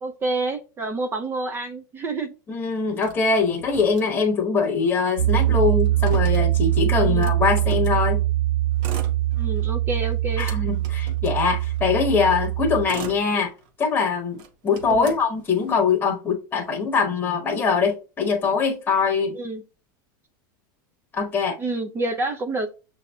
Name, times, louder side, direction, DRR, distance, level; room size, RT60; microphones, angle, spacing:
voice 1, 0.0-2.3 7.0-7.3 9.3-10.5 14.9-15.1 19.3-19.6 21.6-22.7, right 2 dB, 20° right, 0.4 m, -28 dB
voice 2, 2.5-8.2 10.4-13.5 13.8-19.4 21.1-21.6, left 5 dB, 15° left, 1.0 m, -22 dB
Motor vehicle (road), 3.0-4.6 4.9-5.0 5.2-8.0 8.7-9.7 10.1-11.9 12.5-13.9 14.3-15.9, right 2 dB, 45° right, 0.7 m, -40 dB
Piano, 5.2-12.8, right 14 dB, 80° right, 0.4 m, -22 dB
6.4 x 2.6 x 2.3 m
supercardioid pair, 135°, 11 cm